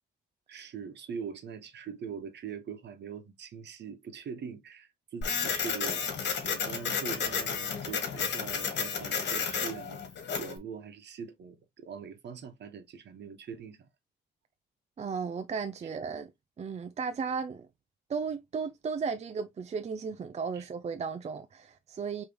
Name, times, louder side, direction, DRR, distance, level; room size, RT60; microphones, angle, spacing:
voice 1, 0.5-10.0 10.4-13.9 20.5-20.7, right 6 dB, 60° right, 1.3 m, -42 dB
Printer, 5.2-10.6, left 6 dB, 60° left, 1.6 m, -32 dB
voice 2, 15.0-16.3 16.6-17.7 18.1-22.2, right 5 dB, 35° right, 0.5 m, -35 dB
5.0 x 3.3 x 3.0 m
cardioid pair, 90°, 20 cm